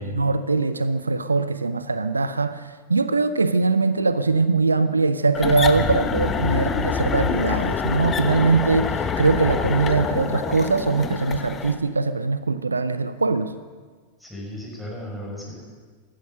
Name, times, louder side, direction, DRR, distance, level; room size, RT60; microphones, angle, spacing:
voice 1, 0.0-13.5, right 3 dB, 80° right, 13 dB, 0.5 m, -22 dB
sound 1, 5.3-11.8, left 6 dB, 20° left, 1.0 m, -26 dB
voice 2, 14.2-15.6, left 1 dB, ahead, -3 dB, 5.6 m, -35 dB
15.5 x 12.5 x 6.6 m, 1.5 s
figure-of-eight pair, 90°, 0 cm